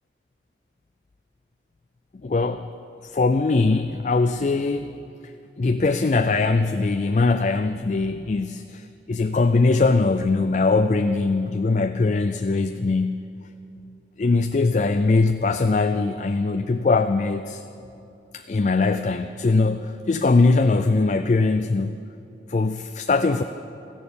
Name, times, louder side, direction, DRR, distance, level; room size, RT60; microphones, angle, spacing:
voice 1, 2.2-2.7 3.0-5.0 5.6-13.3 14.2-17.6 18.3-21.9 22.5-23.4, left 3 dB, 40° left, 8 dB, 0.4 m, -21 dB
15.0 x 10.5 x 7.0 m, 2.7 s
head